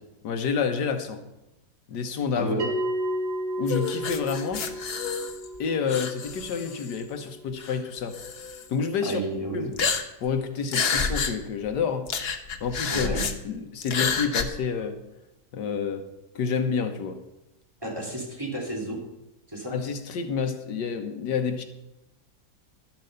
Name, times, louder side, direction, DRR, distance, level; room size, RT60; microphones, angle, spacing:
voice 1, 0.2-1.2 1.9-2.6 3.6-4.7 5.6-8.2 8.7-9.2 9.5-9.8 10.2-12.1 12.6-13.2 13.4-15.0 15.5-16.0 16.3-17.2 19.7-21.6, left 5 dB, 80° left, 7 dB, 1.6 m, -29 dB
Bell, 2.6-7.6, right 1 dB, 75° right, 2.7 m, -33 dB
sound 1, 3.7-5.6 5.9-7.0 7.6-7.7 8.1-8.6 9.7-10.3 10.7-11.3 11.7-11.8 12.1-13.3 13.8-14.4, left 5 dB, 45° left, 0.9 m, -29 dB
voice 2, 9.0-9.7 12.9-13.3 17.8-19.0 19.5-19.8, right 1 dB, 15° right, -3 dB, 2.8 m, -31 dB
11.5 x 7.5 x 6.7 m, 0.94 s
omnidirectional pair, 1.8 m